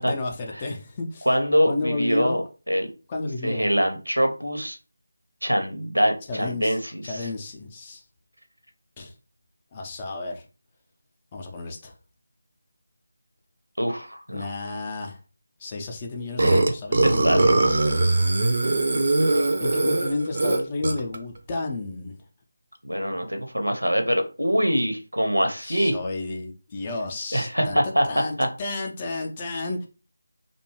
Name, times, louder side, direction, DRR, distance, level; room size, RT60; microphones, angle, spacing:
voice 1, 0.0-1.3 1.7-2.4 3.1-3.7 6.3-6.8 7.0-8.0 9.0-9.1 9.7-10.4 11.3-11.9 14.3-15.2 15.6-17.2 19.6-22.2 25.6-29.9, left 2 dB, 20° left, 1 dB, 0.4 m, -31 dB
voice 2, 1.3-2.9 3.4-4.8 5.4-7.3 13.8-14.5 16.4-16.6 17.0-17.8 22.8-26.0 27.3-28.5, equal, 85° right, 5 dB, 0.7 m, -24 dB
Burping eructation, 16.4-21.2, right 2 dB, 40° right, 0.4 m, -21 dB
2.6 x 2.2 x 2.9 m, 0.33 s
figure-of-eight pair, 160°, 0 cm